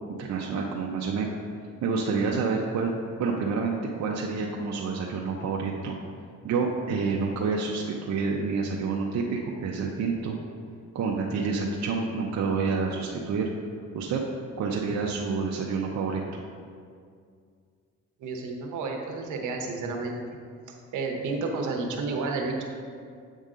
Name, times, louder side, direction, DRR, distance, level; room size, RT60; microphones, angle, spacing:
voice 1, 0.2-1.3 1.8-2.9 3.2-5.9 6.4-10.4 10.9-13.5 13.9-14.2 14.6-16.2, right 4 dB, 65° right, -1 dB, 0.7 m, -28 dB
voice 2, 18.2-20.2 20.9-22.6, right 3 dB, 80° right, 2 dB, 1.1 m, -31 dB
8.3 x 5.2 x 3.8 m, 2.2 s
cardioid pair, 90°, 30 cm